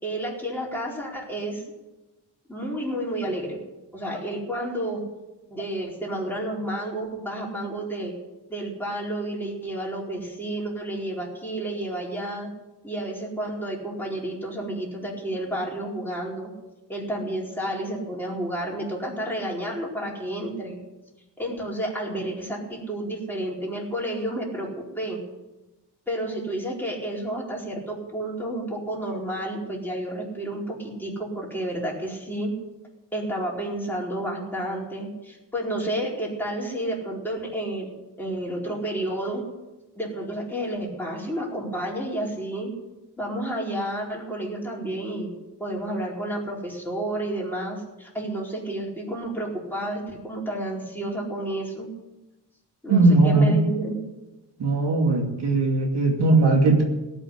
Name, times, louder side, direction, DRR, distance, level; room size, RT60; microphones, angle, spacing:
voice 1, 0.0-1.6 2.5-3.6 3.9-5.0 5.5-8.1 8.5-12.5 12.8-16.5 16.9-20.8 21.4-25.2 26.1-32.5 33.1-37.9 38.2-39.4 39.9-42.7 43.2-45.3 45.6-51.9 52.8-54.0, right 1 dB, 5° left, -4 dB, 4.5 m, -30 dB
voice 2, 52.9-53.6 54.6-56.8, right 2 dB, 70° right, 1 dB, 2.7 m, -19 dB
18.0 x 6.2 x 10.0 m, 1.1 s
wide cardioid pair, 115°, 42 cm